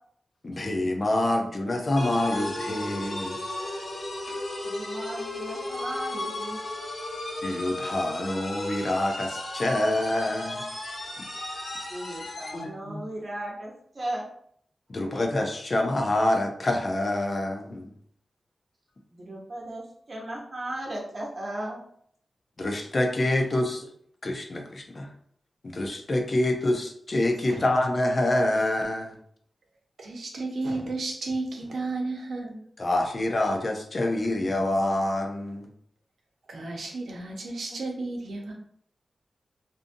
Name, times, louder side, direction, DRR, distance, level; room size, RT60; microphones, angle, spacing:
voice 1, 0.4-3.4 7.4-10.7 11.2-11.3 12.5-13.0 14.9-17.9 22.6-23.8 24.2-25.1 25.6-29.1 32.8-35.7, left 1 dB, 45° left, 3 dB, 0.4 m, -26 dB
sound 1, 2.0-12.7, left 1 dB, 85° left, 1.2 m, -34 dB
voice 2, 4.6-6.6 11.8-14.3 19.1-21.8, right 1 dB, 45° right, -2 dB, 0.9 m, -36 dB
voice 3, 30.0-32.6 36.5-38.5, right 3 dB, 80° right, 1 dB, 0.6 m, -33 dB
2.6 x 2.5 x 2.5 m, 0.64 s
wide cardioid pair, 80°, 0 cm